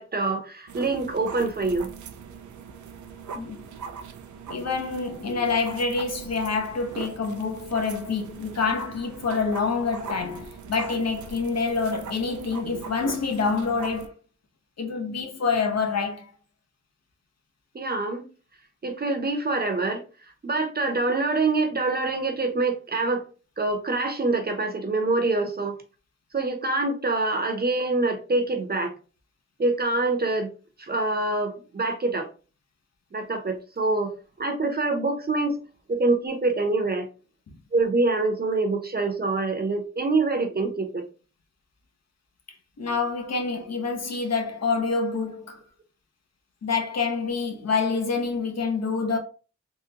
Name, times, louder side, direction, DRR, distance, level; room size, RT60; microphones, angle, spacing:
voice 1, 0.0-1.9 17.7-18.2 18.8-20.0 20.4-23.2 23.6-25.8 26.3-28.9 29.6-30.5 30.8-32.3 33.1-34.1 34.4-35.6 35.9-37.1 37.7-41.1, right 3 dB, 35° right, 0.7 m, -25 dB
sound 1, 0.7-14.1, right 6 dB, 85° right, 0.5 m, -41 dB
voice 2, 3.3-3.7 4.5-14.1 14.8-16.3 37.5-37.6 42.8-45.6 46.6-49.2, left 4 dB, 60° left, 0.8 m, -27 dB
3.6 x 2.2 x 2.8 m
wide cardioid pair, 90°, 29 cm